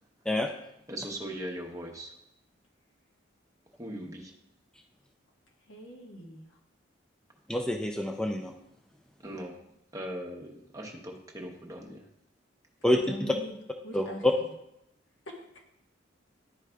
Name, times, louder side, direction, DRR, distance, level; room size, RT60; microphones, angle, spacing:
voice 1, 0.9-2.1 3.8-4.3 9.2-9.5 9.9-12.0, right 1 dB, 15° right, 1 dB, 0.8 m, -39 dB
voice 2, 5.7-6.6 13.0-13.5 13.8-14.3 15.3-15.6, equal, 80° left, 0 dB, 1.2 m, -42 dB
voice 3, 7.5-8.5 12.8-13.0 13.9-14.3, left 1 dB, 5° left, 3 dB, 0.3 m, -26 dB
11.0 x 4.7 x 2.2 m, 0.80 s
head